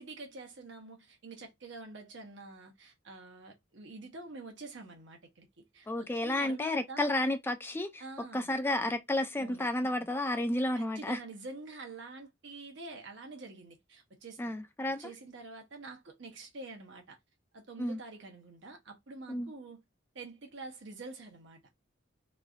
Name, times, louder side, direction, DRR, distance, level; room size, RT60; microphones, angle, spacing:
voice 1, 0.0-7.1 8.0-8.5 9.4-9.7 10.8-14.6 14.9-17.2 17.5-19.8 20.1-21.6, right 3 dB, 70° right, 0.9 m, -47 dB
voice 2, 5.9-8.0 8.3-11.2 14.4-15.1 17.8-18.0 19.3-19.5, left 1 dB, 10° left, 0.3 m, -31 dB
3.1 x 2.5 x 2.3 m
head